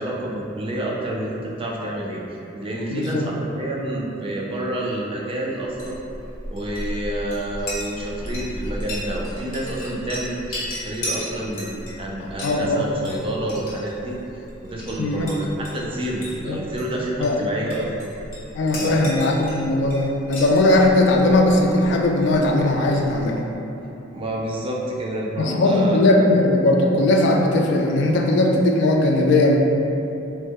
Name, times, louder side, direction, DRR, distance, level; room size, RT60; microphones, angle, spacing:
voice 1, 0.0-2.2 2.5-6.0 6.5-14.2 14.6-17.9 18.8-19.1 24.1-26.0, right 1 dB, 30° right, -3 dB, 0.4 m, -28 dB
voice 2, 2.9-3.3 12.4-12.8 15.0-15.3 16.5-16.6 17.2-17.4 18.5-23.5 25.4-29.6, left 2 dB, 65° left, 1 dB, 0.3 m, -18 dB
Chink clink, 5.6-23.4, equal, 45° left, 0.9 m, -35 dB
3.0 x 2.1 x 3.4 m, 2.8 s
head